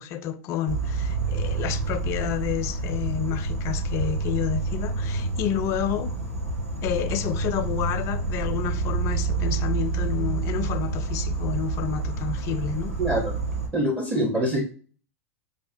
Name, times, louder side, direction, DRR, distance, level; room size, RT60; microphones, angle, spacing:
voice 1, 0.0-6.1 6.8-13.0, left 9 dB, 40° left, 0.4 m, -30 dB
Insect, 0.7-13.7, right 4 dB, 85° right, 1.3 m, -28 dB
voice 2, 13.0-13.4 13.7-14.6, right 1 dB, 20° right, 0.8 m, -24 dB
5.4 x 2.1 x 2.6 m
hypercardioid pair, 95°, 8 cm